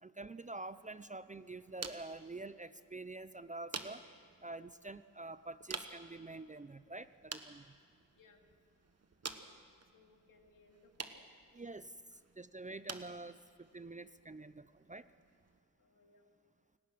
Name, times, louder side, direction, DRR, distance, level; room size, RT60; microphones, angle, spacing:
voice 1, 0.0-4.1 4.4-7.8 11.5-15.1, right 2 dB, 25° right, 14 dB, 0.5 m, -47 dB
sound 1, 0.6-15.6, right 4 dB, 50° right, 1.2 m, -51 dB
voice 2, 9.9-11.2 15.8-16.2, left 4 dB, 70° left, 3 dB, 2.4 m, -66 dB
28.5 x 17.5 x 6.2 m, 2.2 s
wide cardioid pair, 85°, 34 cm